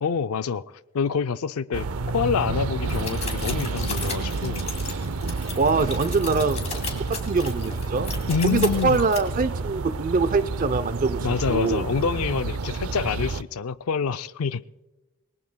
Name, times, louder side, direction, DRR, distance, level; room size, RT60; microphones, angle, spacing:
voice 1, 0.0-4.6 8.3-9.0 11.2-14.6, left 6 dB, 85° left, 0.4 m, -27 dB
sound 1, 1.7-13.4, right 3 dB, 85° right, 0.6 m, -29 dB
sound 2, 2.9-9.2, left 5 dB, 30° left, 2.7 m, -36 dB
voice 2, 5.6-6.7 7.1-8.1 8.4-11.2 11.5-11.9, right 4 dB, 40° right, 0.5 m, -23 dB
27.5 x 20.5 x 2.2 m
head